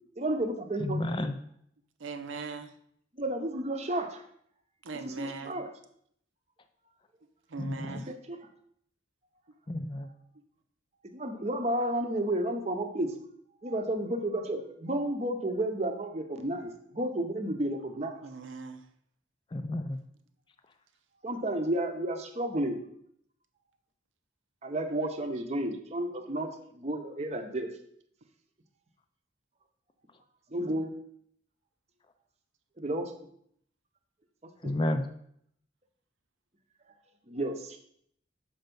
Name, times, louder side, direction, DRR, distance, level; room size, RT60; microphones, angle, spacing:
voice 1, 0.2-1.0 3.1-4.2 5.0-5.7 8.1-8.4 11.1-13.1 13.6-18.2 21.2-22.8 24.6-27.7 30.5-30.9 32.8-33.1 34.6-34.7 37.3-37.8, right 1 dB, 35° right, 5 dB, 0.8 m, -32 dB
voice 2, 0.8-1.4 7.6-8.0 9.7-10.1 19.5-20.0 34.6-35.1, left 1 dB, 25° left, 8 dB, 0.4 m, -31 dB
voice 3, 2.0-2.7 4.8-5.6 7.5-8.1 18.2-18.8, right 4 dB, 85° right, 9 dB, 0.7 m, -40 dB
6.6 x 4.5 x 5.3 m, 0.68 s
head